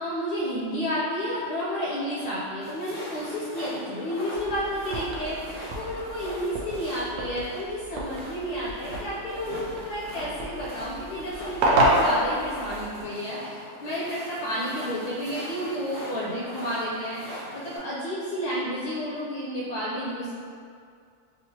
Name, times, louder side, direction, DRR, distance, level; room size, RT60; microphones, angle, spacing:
voice 1, 0.0-20.3, equal, 80° left, -7 dB, 1.2 m, -31 dB
sound 1, 2.6-17.8, equal, 60° right, 1.6 m, -41 dB
sound 2, 4.3-13.0, right 1 dB, 80° right, 1.1 m, -29 dB
3.3 x 3.0 x 2.8 m, 2.3 s
omnidirectional pair, 1.6 m